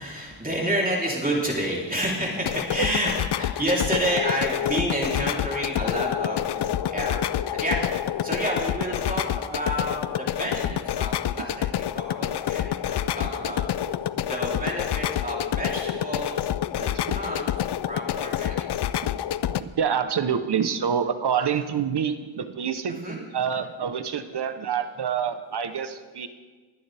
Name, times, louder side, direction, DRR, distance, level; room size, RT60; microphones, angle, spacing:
voice 1, 0.0-7.3 7.5-7.8 8.2-13.6 14.3-16.3 16.8-17.5 17.9-18.7 22.9-23.2, equal, 15° right, -3 dB, 3.3 m, -29 dB
sound 1, 2.4-19.6, left 11 dB, 55° left, 0.5 m, -28 dB
voice 2, 16.7-17.3 19.1-26.3, right 7 dB, 55° right, 10 dB, 0.9 m, -28 dB
22.0 x 9.4 x 3.4 m, 1.4 s
cardioid pair, 80°, 49 cm